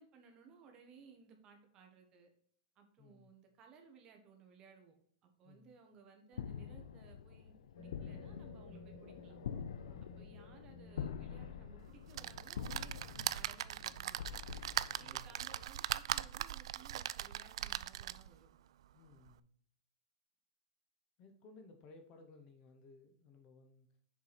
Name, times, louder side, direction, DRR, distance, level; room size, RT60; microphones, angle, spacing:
voice 1, 0.0-2.3 2.7-4.9 5.2-9.4 10.0-14.2 14.9-18.5, right 5 dB, 20° right, 3 dB, 1.2 m, -61 dB
voice 2, 3.0-3.3 5.4-5.8 9.8-10.2 15.0-15.4 18.9-19.5 21.2-23.9, left 3 dB, 25° left, 6 dB, 0.8 m, -60 dB
sound 1, 6.3-15.6, left 8 dB, 85° left, 0.6 m, -47 dB
sound 2, 7.7-15.0, left 3 dB, 60° left, 1.9 m, -57 dB
sound 3, 12.1-18.4 18.9-19.0 19.3-19.4, right 12 dB, 65° right, 0.3 m, -40 dB
7.1 x 4.7 x 4.1 m, 0.62 s
supercardioid pair, 170°, 3 cm